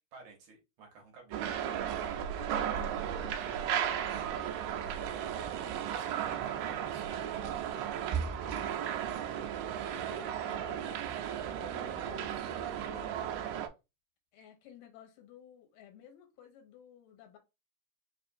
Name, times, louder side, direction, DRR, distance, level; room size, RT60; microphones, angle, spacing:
voice 1, 0.1-1.5 3.1-4.5 5.9-7.9, right 5 dB, 70° right, 2.3 m, -54 dB
sound 1, 1.3-13.7, right 9 dB, 90° right, 2.3 m, -35 dB
voice 2, 2.3-2.8 9.9-13.4 14.3-17.4, left 10 dB, 85° left, 2.4 m, -54 dB
5.2 x 2.5 x 2.5 m
omnidirectional pair, 3.8 m